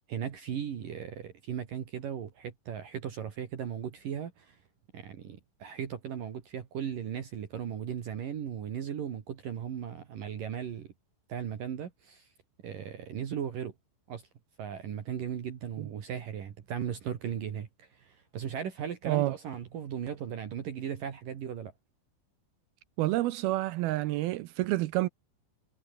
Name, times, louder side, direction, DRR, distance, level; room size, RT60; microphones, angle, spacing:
voice 1, 0.1-4.6 4.9-10.9 11.3-12.3 12.6-13.7 14.1-14.3 14.6-21.7, right 8 dB, 55° right, 3.5 m, -37 dB
voice 2, 23.0-25.1, right 17 dB, 75° right, 2.3 m, -28 dB
omnidirectional pair, 4.9 m